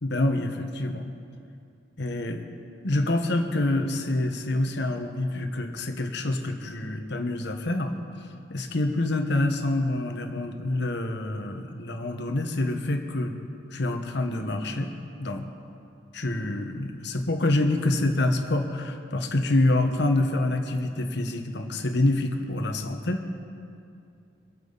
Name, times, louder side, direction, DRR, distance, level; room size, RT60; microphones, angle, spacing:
voice 1, 0.0-1.1 2.0-2.4 2.8-7.9 8.5-13.3 13.7-14.9 15.2-15.5 16.1-23.3, left 2 dB, 65° left, 5 dB, 1.3 m, -26 dB
24.5 x 8.9 x 4.1 m, 2.5 s
head